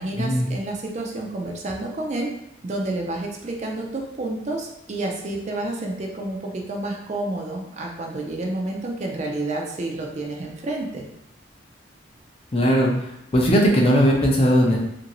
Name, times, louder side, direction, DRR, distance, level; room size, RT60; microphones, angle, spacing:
voice 1, 0.0-2.3 2.6-11.1, right 2 dB, 35° right, 0 dB, 0.4 m, -29 dB
voice 2, 12.5-14.8, equal, 30° left, -1 dB, 0.5 m, -18 dB
2.9 x 2.6 x 2.9 m, 0.80 s
head